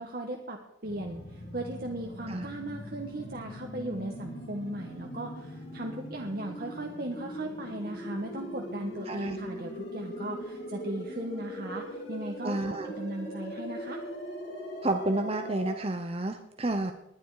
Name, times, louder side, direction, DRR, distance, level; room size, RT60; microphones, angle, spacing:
voice 1, 0.0-14.0, right 1 dB, 50° right, 2 dB, 1.4 m, -37 dB
sound 1, 0.8-15.7, equal, 65° left, 5.4 m, -40 dB
voice 2, 9.1-9.4 12.4-12.9 14.8-16.9, right 2 dB, 30° right, 6 dB, 0.9 m, -30 dB
20.0 x 10.5 x 4.9 m, 0.82 s
head